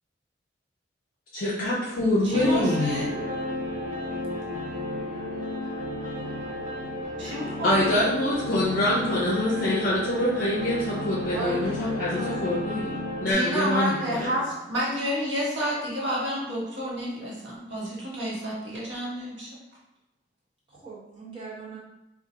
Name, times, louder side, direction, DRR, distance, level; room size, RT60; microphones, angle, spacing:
voice 1, 1.3-3.0 7.6-12.9 13.2-14.3, left 1 dB, 50° left, -6 dB, 0.5 m, -25 dB
sound 1, 2.3-13.3, left 1 dB, 45° right, 0.6 m, -32 dB
voice 2, 2.3-3.3 7.2-8.0 13.2-19.5, equal, 70° right, -6 dB, 1.1 m, -30 dB
voice 3, 11.3-11.8 12.1-12.4 13.0-13.1 13.4-14.5 20.7-21.8, right 3 dB, 30° right, -8 dB, 1.0 m, -38 dB
4.1 x 2.3 x 2.6 m, 0.92 s
head